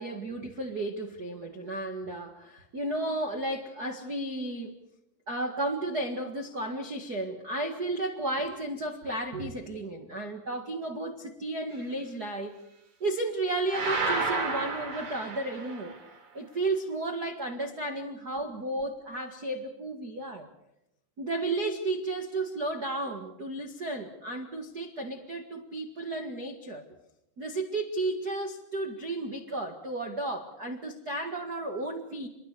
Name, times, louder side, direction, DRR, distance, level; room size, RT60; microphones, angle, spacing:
voice 1, 0.0-4.7 5.3-12.5 13.0-16.0 16.3-20.5 21.2-26.8 27.4-32.3, right 2 dB, 65° right, 4 dB, 0.9 m, -33 dB
sound 1, 13.7-16.0, right 3 dB, 45° right, 4.7 m, -31 dB
27.5 x 22.0 x 6.8 m, 0.85 s
omnidirectional pair, 5.0 m